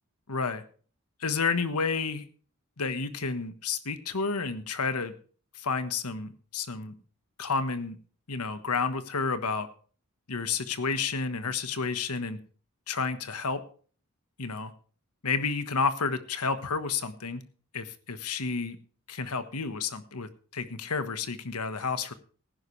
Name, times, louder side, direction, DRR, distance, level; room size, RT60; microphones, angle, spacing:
voice 1, 0.3-0.6 1.2-2.2 2.8-5.1 5.5-6.9 7.4-8.0 8.3-9.7 10.3-12.4 12.9-13.6 14.4-14.7 15.2-17.4 17.7-18.8 19.1-22.1, left 4 dB, 85° left, 11 dB, 1.3 m, -30 dB
18.0 x 10.5 x 3.2 m, 0.42 s
head